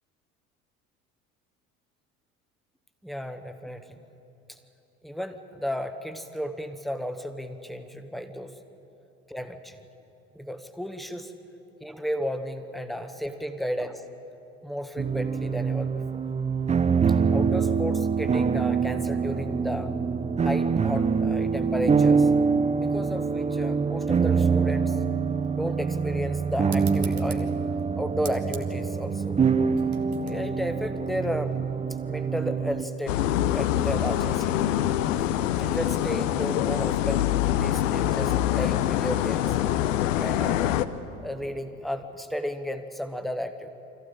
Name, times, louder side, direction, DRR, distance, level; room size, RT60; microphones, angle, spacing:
voice 1, 3.0-4.0 4.5-4.6 5.0-8.5 9.3-9.8 10.3-11.3 11.8-14.0 14.6-16.2 17.3-20.0 20.4-22.3 22.8-25.0 25.5-27.5 28.0-29.4 30.2-31.5 32.0-33.2 33.5-34.7 35.6-39.5 40.2-40.7 41.2-43.7, equal, ahead, 8 dB, 1.3 m, -33 dB
sound 1, 15.0-32.8, right 5 dB, 15° right, 0.8 m, -25 dB
sound 2, 26.7-31.8, right 6 dB, 85° right, 1.4 m, -45 dB
sound 3, 33.1-40.9, left 12 dB, 65° left, 0.8 m, -25 dB
25.0 x 15.0 x 8.9 m, 2.9 s
figure-of-eight pair, 65°, 42 cm